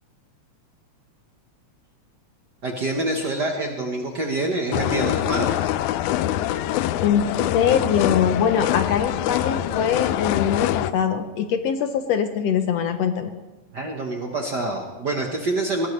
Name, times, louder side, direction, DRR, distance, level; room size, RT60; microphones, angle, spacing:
voice 1, 2.6-5.7 13.7-15.9, right 2 dB, 50° right, 1 dB, 1.3 m, -26 dB
sound 1, 4.7-10.9, left 13 dB, 85° left, 2.0 m, -24 dB
voice 2, 7.5-13.3, left 7 dB, 70° left, 8 dB, 1.7 m, -22 dB
20.5 x 17.5 x 3.2 m, 1.3 s
omnidirectional pair, 3.4 m